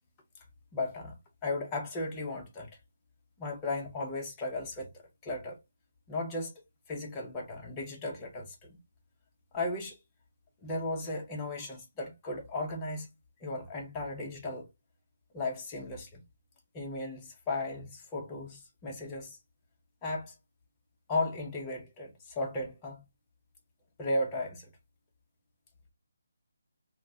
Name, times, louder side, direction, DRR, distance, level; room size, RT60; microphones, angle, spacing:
voice 1, 0.7-1.2 1.4-2.7 3.4-5.6 6.1-6.6 6.9-8.8 9.5-10.0 10.6-13.1 13.4-14.7 15.3-16.2 16.7-19.4 20.0-20.3 21.1-23.0 24.0-24.7, left 2 dB, 15° left, 0.6 m, -35 dB
2.4 x 2.0 x 3.4 m
hypercardioid pair, 165°, 0 cm